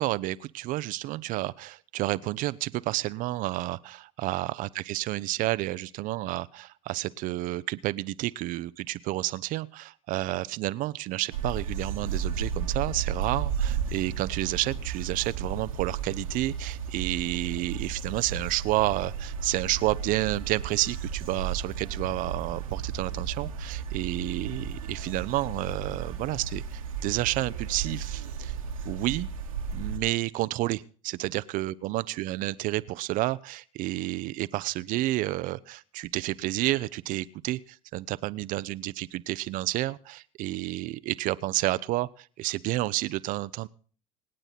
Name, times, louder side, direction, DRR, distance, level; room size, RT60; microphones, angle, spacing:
voice 1, 0.0-28.6 28.8-29.3 29.7-43.7, right 17 dB, 50° right, 16 dB, 0.6 m, -30 dB
sound 1, 11.3-30.0, right 6 dB, 85° right, 1.9 m, -34 dB
26.5 x 9.0 x 4.1 m, 0.42 s
hypercardioid pair, 70°, 17 cm